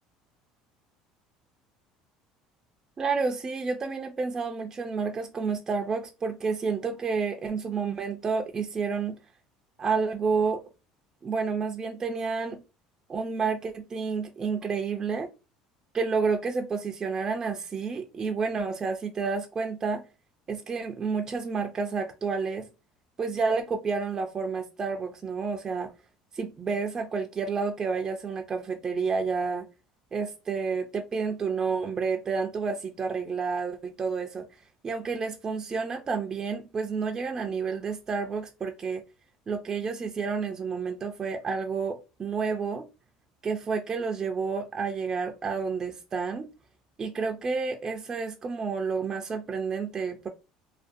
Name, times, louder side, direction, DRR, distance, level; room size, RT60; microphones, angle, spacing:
voice 1, 3.0-9.2 9.8-10.6 11.2-12.6 13.1-15.3 15.9-20.0 20.5-22.7 23.2-25.9 26.3-29.7 30.1-34.5 34.8-39.0 39.5-42.9 43.4-46.5 47.0-50.3, right 5 dB, 30° right, 0.3 m, -30 dB
2.4 x 2.2 x 2.5 m
supercardioid pair, 100°, 2 cm